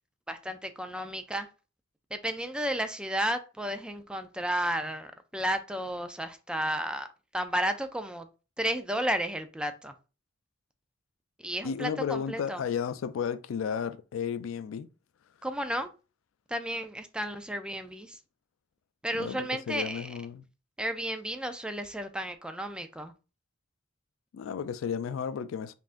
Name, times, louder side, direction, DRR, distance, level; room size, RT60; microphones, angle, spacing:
voice 1, 0.3-1.5 2.1-7.1 7.3-8.3 8.6-9.9 11.4-12.6 15.4-15.9 16.5-18.2 19.0-20.1 20.8-23.1, right 1 dB, 5° right, 0.3 m, -32 dB
voice 2, 11.6-14.9 19.1-20.4 24.3-25.7, left 7 dB, 90° left, 0.3 m, -33 dB
5.4 x 2.4 x 2.5 m
head